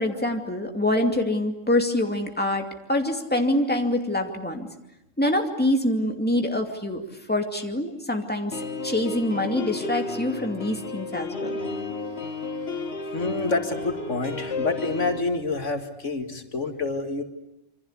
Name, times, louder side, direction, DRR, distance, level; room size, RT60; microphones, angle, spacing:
voice 1, 0.0-4.7 5.2-7.0 7.3-11.5, left 1 dB, 5° left, 3 dB, 2.5 m, -25 dB
sound 1, 8.5-15.2, left 3 dB, 55° left, 2.2 m, -32 dB
voice 2, 13.1-17.2, left 3 dB, 75° left, 6 dB, 2.4 m, -28 dB
27.5 x 25.5 x 8.3 m, 0.85 s
omnidirectional pair, 1.3 m